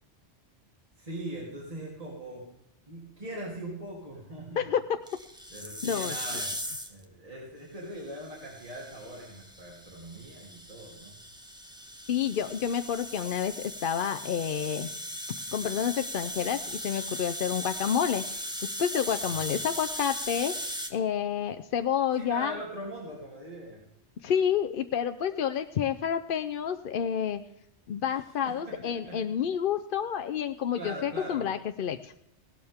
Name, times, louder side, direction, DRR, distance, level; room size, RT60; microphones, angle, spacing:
voice 1, 1.0-2.5 2.9-4.6 5.5-6.5 6.9-11.2 19.2-19.5 22.2-23.8 28.4-29.2 30.7-31.6, right 1 dB, 30° right, -4 dB, 3.3 m, -41 dB
voice 2, 4.6-5.0 5.8-6.2 12.1-14.9 15.5-18.5 18.8-22.6 24.2-27.4 27.9-32.1, left 8 dB, 55° left, 8 dB, 0.7 m, -29 dB
sound 1, 5.1-7.0 8.1-20.9, equal, 5° right, 1.4 m, -38 dB
17.5 x 12.0 x 3.6 m, 0.82 s
omnidirectional pair, 1.2 m